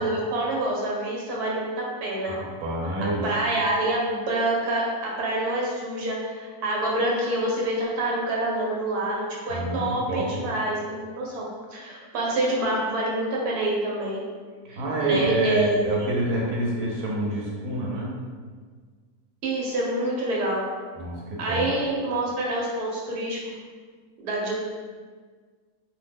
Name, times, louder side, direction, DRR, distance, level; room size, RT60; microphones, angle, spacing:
voice 1, 0.0-2.4 3.2-14.2 14.7-15.8 19.4-20.7 21.4-23.6 24.2-24.5, right 1 dB, 90° right, -3 dB, 1.2 m, -27 dB
voice 2, 2.3-3.3 9.5-10.4 14.8-18.2 21.0-21.7, right 1 dB, 70° right, -3 dB, 1.1 m, -27 dB
2.6 x 2.1 x 3.3 m, 1.5 s
omnidirectional pair, 1.6 m